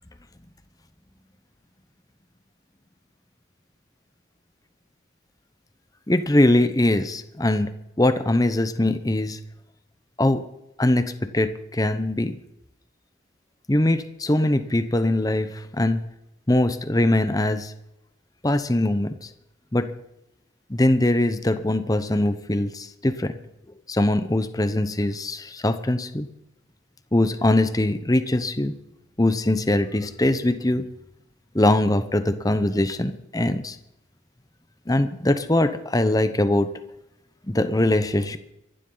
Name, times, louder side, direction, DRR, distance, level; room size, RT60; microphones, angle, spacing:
voice 1, 6.1-9.4 10.2-10.4 10.8-12.4 13.7-16.0 16.5-17.7 18.4-19.3 19.7-19.9 20.7-23.3 23.9-26.3 27.1-28.7 29.2-30.8 31.5-33.8 34.9-36.7 37.5-38.4, left 1 dB, 20° left, 10 dB, 0.8 m, -22 dB
23.5 x 12.0 x 3.9 m, 0.87 s
head